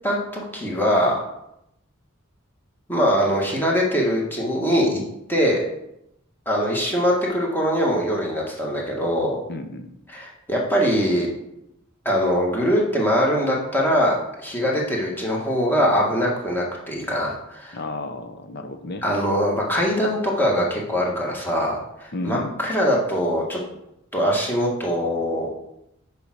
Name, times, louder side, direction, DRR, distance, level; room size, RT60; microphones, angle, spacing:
voice 1, 0.0-1.2 2.9-5.0 5.3-5.6 6.4-9.4 10.1-11.3 12.0-17.8 19.0-23.6 24.1-25.5, equal, 10° left, -3 dB, 1.7 m, -22 dB
voice 2, 9.5-9.9 17.7-19.1 22.1-22.6, left 2 dB, 50° left, 7 dB, 0.7 m, -32 dB
6.9 x 4.8 x 6.2 m, 0.82 s
head